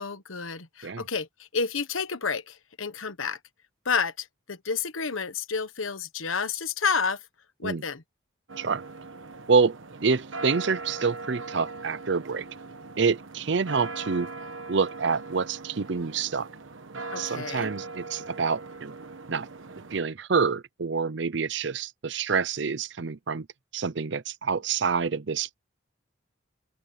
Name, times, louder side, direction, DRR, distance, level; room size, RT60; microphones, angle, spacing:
voice 1, 0.0-3.4 3.8-7.2 7.6-8.0 17.1-17.7, left 5 dB, 90° left, 1.3 m, -30 dB
sound 1, 8.5-20.0, right 3 dB, 75° right, 1.3 m, -40 dB
voice 2, 9.5-12.5 13.0-14.3 14.7-16.5 17.2-18.9 19.3-19.5 19.9-23.5 23.7-25.5, right 5 dB, 60° right, 0.6 m, -27 dB
open air
head